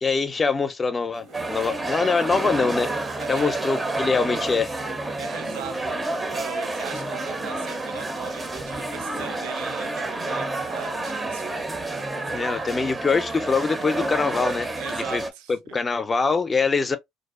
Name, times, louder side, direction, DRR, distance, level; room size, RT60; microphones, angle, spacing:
voice 1, 0.0-2.9 3.3-4.7 12.3-15.2 15.5-17.0, left 4 dB, 30° left, 0.5 m, -24 dB
sound 1, 1.1-9.6 9.8-12.4, right 3 dB, 60° right, 0.9 m, -46 dB
sound 2, 1.3-15.3, right 2 dB, 20° right, 0.6 m, -29 dB
voice 2, 3.2-3.6 5.2-11.6 14.8-15.8, right 9 dB, 80° right, 0.4 m, -39 dB
2.5 x 2.0 x 2.4 m
hypercardioid pair, 65°, 0 cm